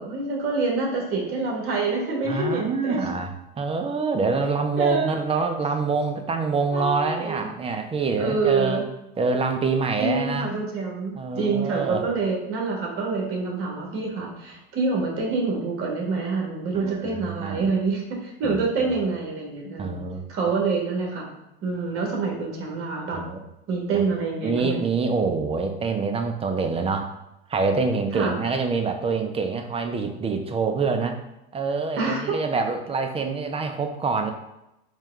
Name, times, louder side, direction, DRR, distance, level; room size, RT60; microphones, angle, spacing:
voice 1, 0.0-3.0 4.8-5.1 6.7-7.5 8.2-8.8 10.0-20.0 20.3-21.3 21.6-23.2 23.7-24.8 28.1-28.4 32.0-32.4, right 4 dB, 45° right, -1 dB, 1.5 m, -26 dB
voice 2, 2.2-8.9 9.2-10.5 11.2-12.0 16.7-17.7 18.4-18.6 19.8-20.2 23.1-23.4 23.9-24.0 24.4-27.1 27.5-31.2 31.5-34.3, right 4 dB, 20° right, 5 dB, 0.5 m, -26 dB
4.6 x 2.4 x 3.4 m, 0.88 s
supercardioid pair, 100°, 31 cm